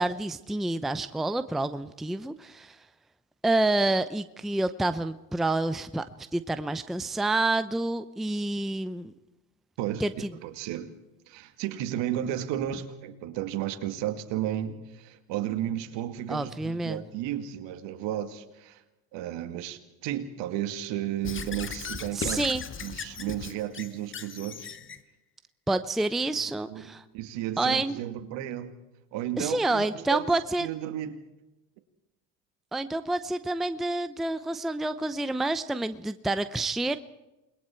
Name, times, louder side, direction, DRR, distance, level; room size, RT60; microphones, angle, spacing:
voice 1, 0.0-2.8 3.4-9.1 10.0-10.3 16.3-17.0 22.1-22.6 25.7-27.0 27.6-28.0 29.4-30.7 32.7-37.0, right 2 dB, ahead, 0.7 m, -28 dB
voice 2, 9.8-10.9 11.3-18.8 19.1-22.4 22.8-24.8 26.7-28.7 29.1-31.2, right 11 dB, 60° right, 2.2 m, -33 dB
Squeak / Writing, 21.2-25.0, left 7 dB, 25° left, 1.2 m, -37 dB
28.5 x 21.0 x 4.5 m
hypercardioid pair, 85°, 49 cm